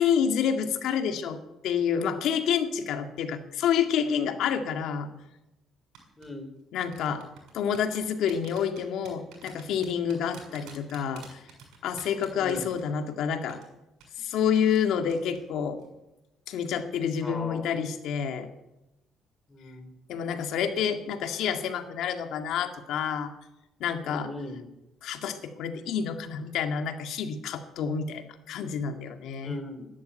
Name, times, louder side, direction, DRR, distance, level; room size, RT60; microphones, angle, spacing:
voice 1, 0.0-1.4 1.6-5.1 6.7-7.2 7.5-11.4 11.8-13.6 14.2-15.8 16.5-18.5 20.1-23.3 23.8-24.3 25.0-29.6, left 7 dB, 75° left, 6 dB, 2.0 m, -28 dB
sound 1, 5.9-6.3 6.9-13.2 13.5-13.6 14.0-14.1 14.5-14.8 15.1-15.4 15.7-15.9, right 7 dB, 80° right, 6.8 m, -49 dB
voice 2, 6.2-6.6 10.5-10.8 12.3-12.7 17.2-17.8 19.5-19.9 24.0-24.7 29.4-29.9, left 2 dB, 15° left, 5 dB, 3.4 m, -39 dB
13.0 x 11.0 x 9.1 m, 0.93 s
cardioid pair, 110°, 0 cm